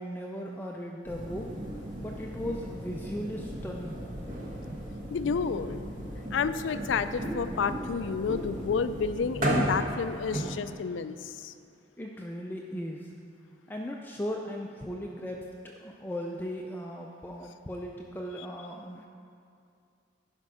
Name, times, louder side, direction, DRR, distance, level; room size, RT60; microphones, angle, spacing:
voice 1, 0.0-1.5 2.0-4.1 12.0-13.1 13.7-19.1, equal, 10° left, 0 dB, 0.4 m, -37 dB
sound 1, 1.0-10.5, right 1 dB, 45° right, 1.2 m, -35 dB
voice 2, 5.1-5.8 6.3-11.5, left 5 dB, 85° left, 12 dB, 0.4 m, -30 dB
11.0 x 5.2 x 4.9 m, 2.5 s
head